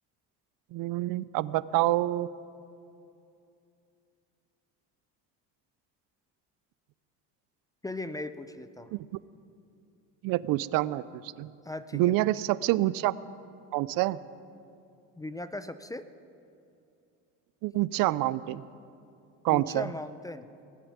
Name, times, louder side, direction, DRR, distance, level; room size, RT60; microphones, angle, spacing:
voice 1, 0.7-2.3 8.9-9.0 10.2-11.5 11.9-13.1 13.7-14.2 17.6-18.6 19.4-19.8, right 16 dB, 70° right, 18 dB, 0.5 m, -27 dB
voice 2, 7.8-8.9 11.6-12.0 15.2-16.1 19.5-20.5, left 2 dB, 10° left, 12 dB, 0.4 m, -38 dB
18.5 x 6.9 x 9.5 m, 2.6 s
cardioid pair, 115°, 36 cm